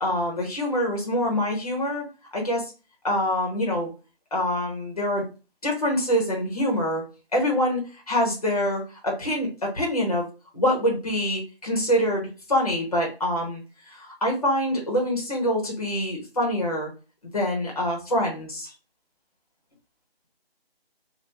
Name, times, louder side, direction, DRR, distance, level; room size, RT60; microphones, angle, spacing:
voice 1, 0.0-2.1 2.3-2.7 3.0-3.9 4.3-5.3 5.6-7.0 7.3-10.3 10.5-16.9 17.3-18.7, equal, 35° left, -1 dB, 0.9 m, -25 dB
3.4 x 2.2 x 2.9 m, 0.33 s
figure-of-eight pair, 175°, 31 cm